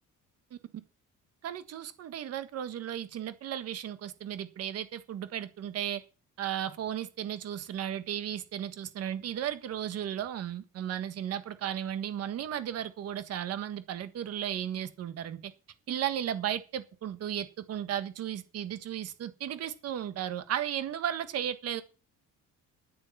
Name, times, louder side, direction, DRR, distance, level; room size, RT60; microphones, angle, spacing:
voice 1, 1.4-6.0 6.4-15.5 15.9-21.8, right 10 dB, 50° right, 11 dB, 1.6 m, -35 dB
10.0 x 9.5 x 7.2 m, 0.33 s
cardioid pair, 175°, 31 cm